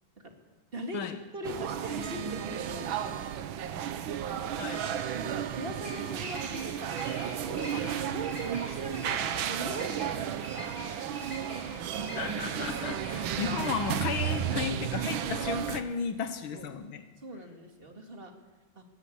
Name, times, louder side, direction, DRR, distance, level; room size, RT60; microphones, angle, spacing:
voice 1, 0.7-3.0 5.1-7.8 8.1-11.2 16.5-16.7 17.2-18.3 18.8-18.9, right 1 dB, 30° right, 4 dB, 2.4 m, -41 dB
sound 1, 1.4-15.8, right 9 dB, 80° right, 1.7 m, -33 dB
sound 2, 2.0-3.4 4.7-6.2, right 8 dB, 60° right, 1.2 m, -45 dB
Bird vocalization bird call bird song, 3.4-16.7, equal, 10° right, 5.3 m, -46 dB
voice 2, 4.6-5.0 12.2-17.0, left 6 dB, 85° left, 9 dB, 1.9 m, -34 dB
20.0 x 16.0 x 8.6 m, 1.2 s
omnidirectional pair, 2.2 m